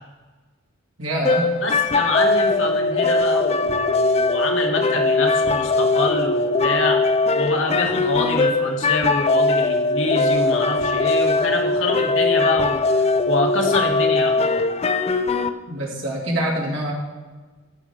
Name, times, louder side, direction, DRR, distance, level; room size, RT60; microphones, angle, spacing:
voice 1, 1.0-1.6 15.7-16.9, right 1 dB, 70° right, -3 dB, 2.8 m, -25 dB
sound 1, 1.2-15.5, left 3 dB, 30° left, 0.4 m, -20 dB
voice 2, 1.6-7.1 7.4-14.6, left 2 dB, 70° left, 1 dB, 1.7 m, -26 dB
15.5 x 5.4 x 5.1 m, 1.3 s
head